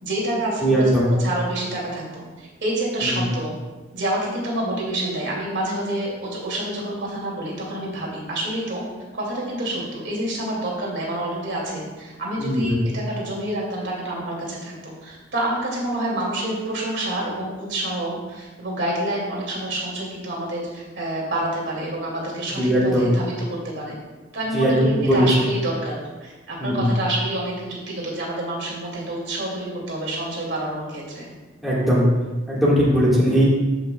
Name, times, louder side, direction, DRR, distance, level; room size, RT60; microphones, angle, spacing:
voice 1, 0.0-3.5 3.9-8.8 9.1-24.0 24.3-31.3, right 1 dB, 65° right, -3 dB, 2.4 m, -28 dB
voice 2, 0.6-1.1 3.0-3.2 12.4-12.8 22.5-23.1 24.5-25.5 26.6-26.9 31.6-32.1 32.5-33.5, equal, ahead, -8 dB, 1.7 m, -19 dB
14.5 x 5.7 x 2.3 m, 1.2 s
head